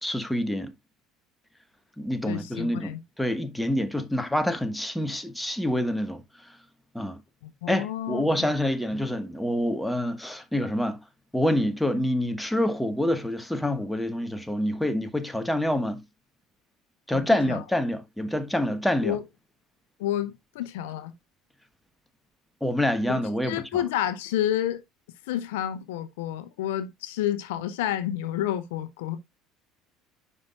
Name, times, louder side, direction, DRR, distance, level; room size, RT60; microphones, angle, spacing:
voice 1, 0.0-0.7 2.0-2.9 3.2-6.2 6.9-7.2 7.7-11.0 11.3-16.0 17.1-19.2 22.6-23.6, left 1 dB, 5° left, 1.2 m, -26 dB
voice 2, 2.3-3.0 7.4-8.5 17.1-17.6 19.0-19.2 20.0-21.1 23.1-24.8 25.3-29.2, left 12 dB, 75° left, 0.7 m, -30 dB
9.5 x 5.5 x 2.4 m
hypercardioid pair, 65°, 0 cm